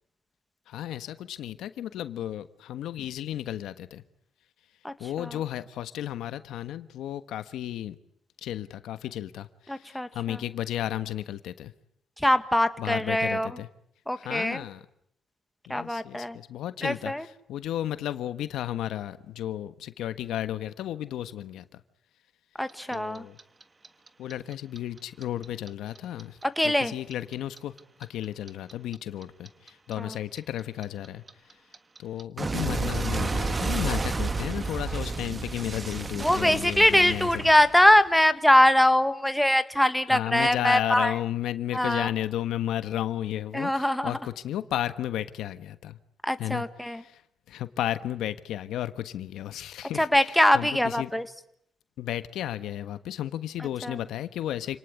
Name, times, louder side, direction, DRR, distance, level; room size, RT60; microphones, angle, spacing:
voice 1, 0.7-4.0 5.0-8.0 8.4-11.7 12.8-13.7 14.2-14.8 15.7-21.8 22.9-23.4 24.2-26.4 26.6-27.7 28.1-31.2 32.0-37.5 40.1-46.0 46.4-47.2 47.5-51.1 52.0-54.8, left 12 dB, 80° left, 12 dB, 1.4 m, -33 dB
voice 2, 4.8-5.3 9.7-10.4 12.2-13.5 14.1-14.6 15.7-16.4 16.8-17.2 22.6-23.2 26.6-26.9 30.0-30.1 36.2-41.1 41.7-42.1 43.5-44.1 46.2-47.0 50.0-51.2 53.8-53.9, left 1 dB, 5° left, 10 dB, 1.6 m, -22 dB
Clock, 22.7-25.7 26.0-28.9 29.2-38.1, right 3 dB, 25° right, 1.5 m, -31 dB
28.5 x 19.0 x 9.9 m, 0.74 s
cardioid pair, 90°, 0 cm